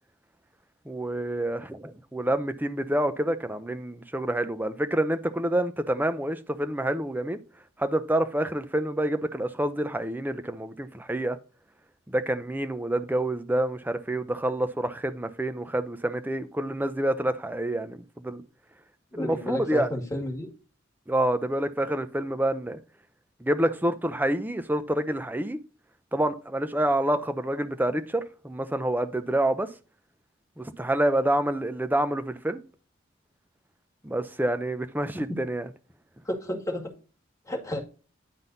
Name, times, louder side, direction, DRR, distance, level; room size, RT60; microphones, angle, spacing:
voice 1, 0.9-7.4 7.8-11.4 12.1-18.4 19.1-19.9 21.1-22.8 23.4-25.6 26.1-29.7 30.6-32.6 34.0-35.7, right 1 dB, 10° right, 0.6 m, -27 dB
voice 2, 19.1-20.5 36.3-36.8 37.5-37.8, left 1 dB, 15° left, 2.0 m, -31 dB
10.5 x 3.9 x 3.9 m
head